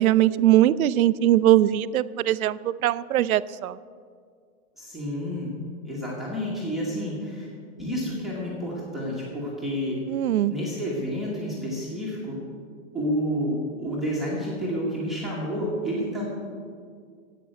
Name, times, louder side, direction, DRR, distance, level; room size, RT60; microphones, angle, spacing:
voice 1, 0.0-3.8 10.1-10.5, right 13 dB, 80° right, 17 dB, 0.6 m, -21 dB
voice 2, 4.8-5.5 5.8-7.5 7.8-10.0 10.5-12.4 12.9-16.2, equal, ahead, -6 dB, 1.3 m, -29 dB
11.0 x 8.5 x 7.8 m, 2.1 s
hypercardioid pair, 170°, 42 cm